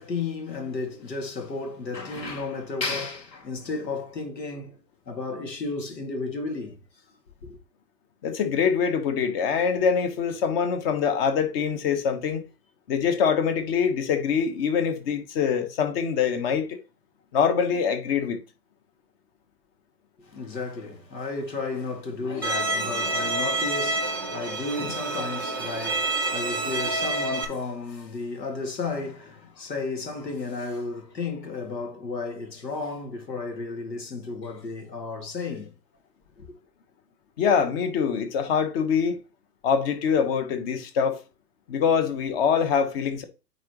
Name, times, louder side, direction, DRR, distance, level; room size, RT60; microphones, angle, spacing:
voice 1, 0.0-4.8 5.1-6.8 7.4-7.6 20.2-35.7 36.4-36.5, left 3 dB, 80° left, 2.5 m, -33 dB
voice 2, 8.2-12.4 12.9-16.8 17.3-18.4 37.4-39.2 39.6-41.2 41.7-43.2, left 6 dB, 35° left, 1.3 m, -24 dB
Bowed string instrument, 22.4-27.4, right 2 dB, 15° right, 0.3 m, -28 dB
9.3 x 4.0 x 3.1 m
hypercardioid pair, 130°, 49 cm